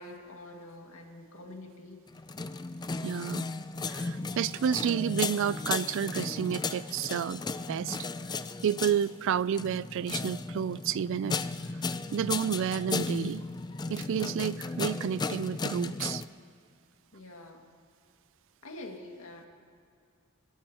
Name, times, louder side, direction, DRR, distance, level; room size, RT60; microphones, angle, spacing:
voice 1, 0.0-2.0 17.1-17.7 18.6-19.5, left 1 dB, 75° left, 1 dB, 2.0 m, -46 dB
sound 1, 2.1-16.3, left 3 dB, 20° left, 0.4 m, -35 dB
voice 2, 3.0-3.5 3.9-7.4 7.7-8.0 8.6-11.4 12.1-13.4 13.9-16.2, right 8 dB, 60° right, 20 dB, 0.3 m, -30 dB
29.5 x 14.0 x 2.9 m, 2.4 s
head